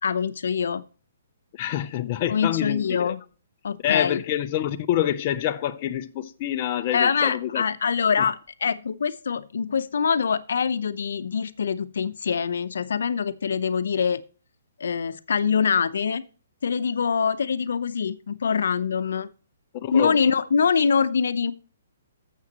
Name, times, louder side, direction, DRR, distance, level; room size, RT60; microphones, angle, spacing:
voice 1, 0.0-0.8 2.3-3.2 3.6-4.2 6.9-14.2 14.8-16.2 16.6-19.3 19.9-21.5, left 6 dB, 70° left, 0.7 m, -24 dB
voice 2, 1.5-3.1 3.8-7.6 19.8-20.2, left 11 dB, 30° left, 0.5 m, -26 dB
12.0 x 7.4 x 2.9 m
hypercardioid pair, 170°, 0 cm